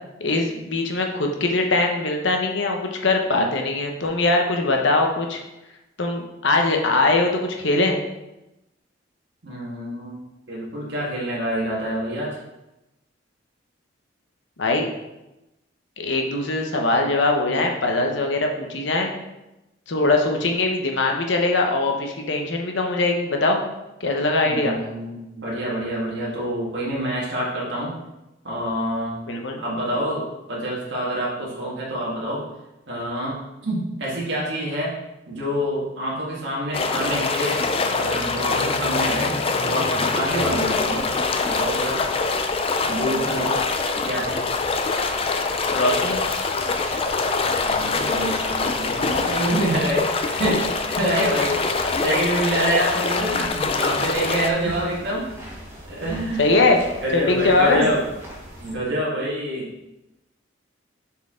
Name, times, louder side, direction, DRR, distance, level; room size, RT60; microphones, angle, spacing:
voice 1, 0.2-5.4 6.0-8.0 14.6-14.9 16.0-19.1 19.9-23.6 24.0-24.8 29.3-29.6 45.7-46.2 54.7-54.8 56.4-56.8 57.1-57.9, left 2 dB, 70° left, 2 dB, 1.0 m, -21 dB
voice 2, 9.4-12.4 24.4-27.9 28.4-29.2 29.6-32.4 32.9-34.9 35.3-37.6 38.0-39.4 39.6-41.1 41.4-42.0 42.9-43.6 44.0-44.4 47.6-55.3 55.8-56.6 57.0-58.0 58.6-59.7, right 1 dB, 65° right, -5 dB, 1.8 m, -26 dB
sound 1, 36.7-54.5, left 4 dB, 30° left, 0.4 m, -24 dB
sound 2, 40.2-58.8, equal, 15° right, 1.3 m, -41 dB
7.1 x 4.6 x 3.8 m, 0.96 s
head